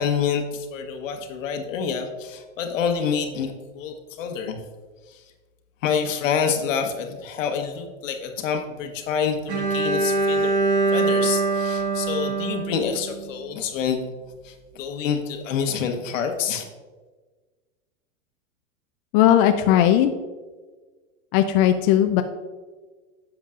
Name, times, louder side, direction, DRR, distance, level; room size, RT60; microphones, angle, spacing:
voice 1, 0.0-4.6 5.1-5.2 5.8-10.6 10.9-14.0 14.4-16.6, left 7 dB, 75° left, 5 dB, 1.3 m, -27 dB
Bowed string instrument, 9.5-13.5, right 3 dB, 40° right, 1.6 m, -23 dB
voice 2, 19.1-20.1 21.3-22.2, left 11 dB, 45° left, 7 dB, 0.5 m, -17 dB
10.0 x 7.2 x 2.5 m, 1.3 s
hypercardioid pair, 120°, 39 cm